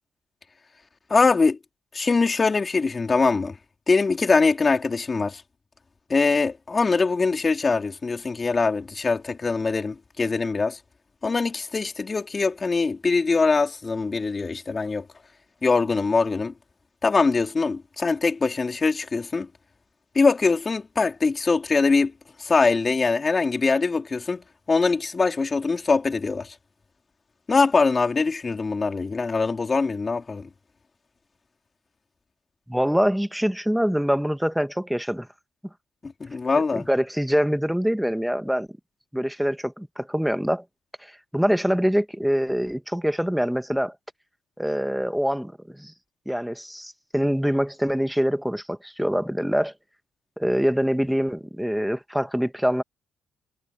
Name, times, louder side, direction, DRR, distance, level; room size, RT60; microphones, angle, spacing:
voice 1, 1.1-1.6 1.9-3.6 3.9-5.4 6.1-10.8 11.2-15.1 15.6-16.5 17.0-19.5 20.1-22.1 22.4-26.5 27.5-30.5 36.0-36.9, left 4 dB, 30° left, 3.8 m, -22 dB
voice 2, 32.7-35.3 36.7-38.8 39.1-40.6 41.0-44.0 44.6-45.9 46.3-49.7 50.4-52.8, equal, ahead, 1.7 m, -24 dB
cardioid pair, 90°, 0 cm